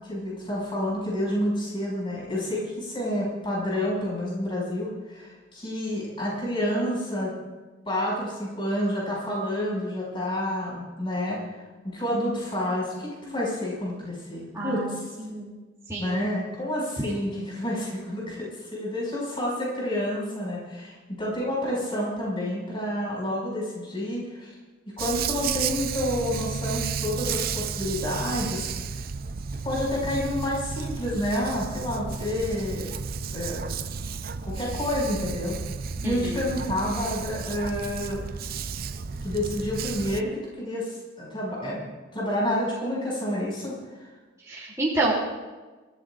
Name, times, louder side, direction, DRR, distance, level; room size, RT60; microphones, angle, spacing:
voice 1, 0.0-7.3 7.9-11.4 11.8-15.0 16.0-24.5 25.0-28.7 29.6-32.9 33.3-33.7 34.4-35.6 36.0-38.2 39.2-40.3 40.6-41.8 42.1-43.7, left 1 dB, 25° left, -4 dB, 6.2 m, -29 dB
voice 2, 14.5-15.5 15.9-16.3 17.0-17.3 36.0-36.5 44.4-45.1, right 2 dB, 15° right, -6 dB, 2.9 m, -29 dB
Dog, 25.0-40.2, right 5 dB, 50° right, 0.6 m, -32 dB
27.0 x 15.0 x 2.5 m, 1.3 s
head